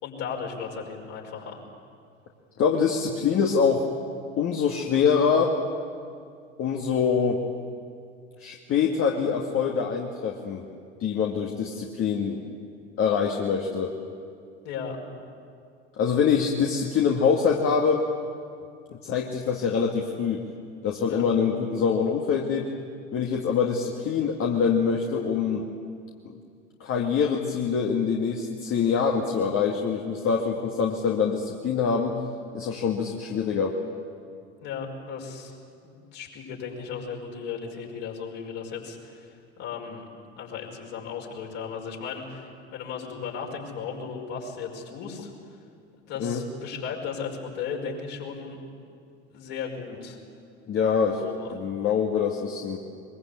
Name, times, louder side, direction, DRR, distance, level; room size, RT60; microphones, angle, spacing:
voice 1, 0.0-1.6 14.6-15.0 21.1-21.2 34.6-40.1 40.4-45.3 46.1-48.6 49.3-50.2 51.2-51.6, left 6 dB, 50° left, 0 dB, 5.6 m, -36 dB
voice 2, 2.6-3.8 4.4-5.6 6.6-7.4 8.4-10.6 11.0-12.4 13.0-13.9 16.0-18.1 19.0-20.5 20.8-22.7 23.1-25.7 26.2-26.3 26.8-32.2 32.5-33.8 46.2-46.4 50.7-51.2 51.5-52.8, left 6 dB, 35° left, 0 dB, 2.1 m, -24 dB
23.0 x 22.5 x 8.4 m, 2.3 s
figure-of-eight pair, 75°, 36 cm